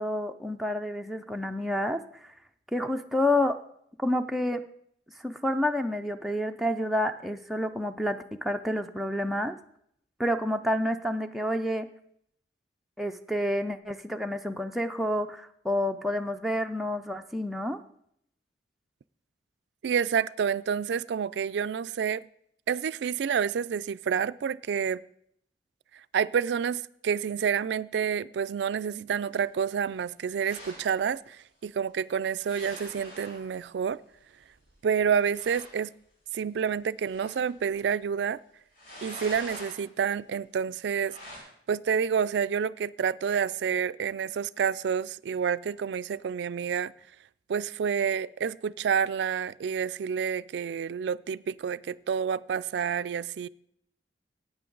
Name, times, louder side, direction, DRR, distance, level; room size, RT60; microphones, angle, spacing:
voice 1, 0.0-2.3 2.7-3.6 4.0-4.6 5.2-9.6 10.2-11.9 13.0-17.8, left 1 dB, ahead, 0.4 m, -29 dB
voice 2, 19.8-22.3 22.7-25.0 26.1-34.0 34.8-35.9 36.3-38.4 39.0-41.2 41.7-46.9 47.5-53.5, right 7 dB, 70° right, 0.3 m, -29 dB
sound 1, 30.4-30.9 32.4-33.5 34.7-34.8 35.0-35.1 35.3-35.8 37.0-37.5 38.7-39.8 41.0-41.4, left 1 dB, 55° left, 4.9 m, -45 dB
15.0 x 9.1 x 3.8 m
head